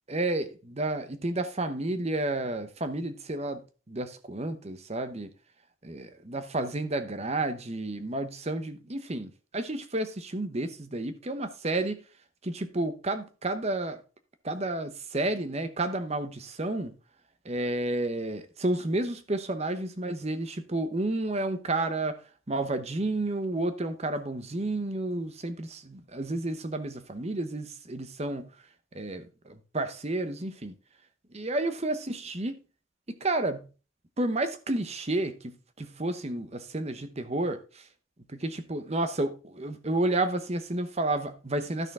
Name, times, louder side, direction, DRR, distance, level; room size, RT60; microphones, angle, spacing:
voice 1, 0.1-3.6 3.9-5.3 5.8-12.0 12.4-14.0 14.4-16.9 17.4-22.2 22.5-28.5 28.9-30.7 31.3-32.6 33.2-33.7 34.2-37.9 38.3-41.9, right 2 dB, 30° right, 0.9 m, -31 dB
12.0 x 6.4 x 3.6 m
head